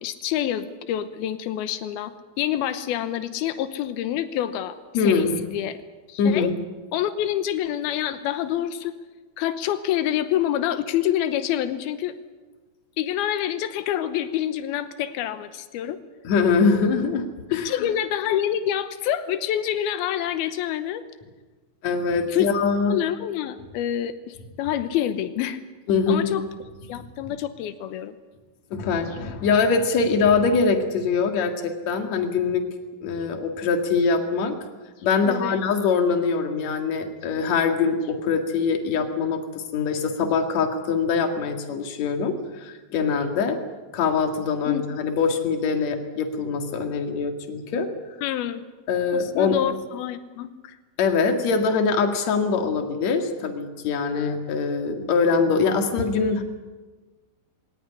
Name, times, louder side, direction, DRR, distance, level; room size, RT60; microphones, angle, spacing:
voice 1, 0.0-5.8 6.1-6.5 6.9-8.9 9.4-12.2 13.0-16.0 17.5-21.0 22.3-22.5 22.9-25.6 26.1-26.4 26.9-28.2 35.2-35.6 44.7-44.9 48.2-48.6 49.1-50.8, left 11 dB, 90° left, 11 dB, 2.9 m, -27 dB
voice 2, 4.9-5.3 6.2-6.5 16.2-17.9 21.8-23.0 25.9-26.3 28.7-32.7 33.0-34.6 35.0-43.6 43.9-47.9 48.9-49.6 51.0-56.4, left 5 dB, 50° left, 6 dB, 2.9 m, -23 dB
21.0 x 18.0 x 9.9 m, 1.3 s
omnidirectional pair, 4.4 m